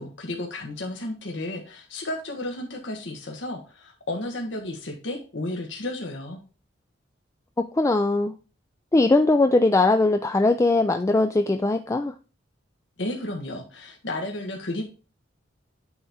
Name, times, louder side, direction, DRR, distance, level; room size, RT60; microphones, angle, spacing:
voice 1, 0.0-6.4 13.0-14.8, left 1 dB, 70° left, 2 dB, 1.3 m, -33 dB
voice 2, 7.6-8.3 8.9-12.1, left 2 dB, 15° left, 7 dB, 0.3 m, -20 dB
8.6 x 3.5 x 4.2 m, 0.34 s
head